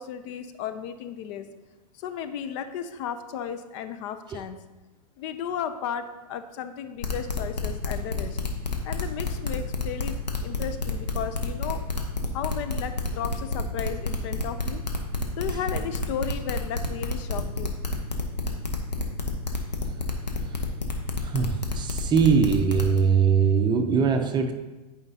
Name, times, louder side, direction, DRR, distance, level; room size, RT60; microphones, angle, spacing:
voice 1, 0.0-1.5 2.0-4.6 5.2-8.4 8.8-10.1 10.4-11.8 12.3-14.8 15.4-17.7, left 8 dB, 45° left, 10 dB, 0.5 m, -34 dB
sound 1, 7.0-23.0, left 3 dB, 90° left, 1.2 m, -29 dB
voice 2, 21.2-24.5, right 6 dB, 20° right, 6 dB, 0.7 m, -21 dB
11.0 x 5.0 x 2.8 m, 1.2 s
hypercardioid pair, 110°, 21 cm